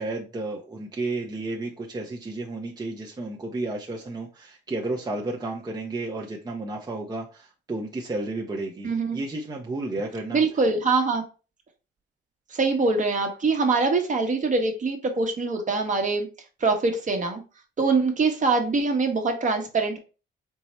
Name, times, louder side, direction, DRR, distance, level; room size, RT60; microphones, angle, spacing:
voice 1, 0.0-10.4, right 2 dB, 20° right, 0.7 m, -32 dB
voice 2, 8.8-9.2 10.3-11.2 12.5-16.3 16.6-17.4 17.8-20.0, right 3 dB, 40° right, 1.0 m, -23 dB
4.5 x 2.1 x 4.2 m
cardioid pair, 90°, 20 cm